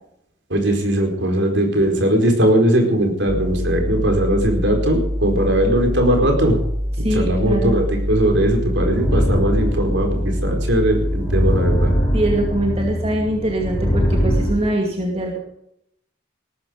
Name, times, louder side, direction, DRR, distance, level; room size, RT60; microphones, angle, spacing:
voice 1, 0.5-6.6 7.0-11.9, right 1 dB, 65° right, 3 dB, 4.6 m, -19 dB
sound 1, 3.3-11.8, equal, 10° right, 1.1 m, -25 dB
voice 2, 7.0-7.8 12.1-15.4, right 1 dB, 30° right, 0 dB, 2.3 m, -22 dB
sound 2, 8.6-14.5, equal, 15° left, 7.2 m, -22 dB
19.0 x 13.0 x 5.2 m, 0.76 s
head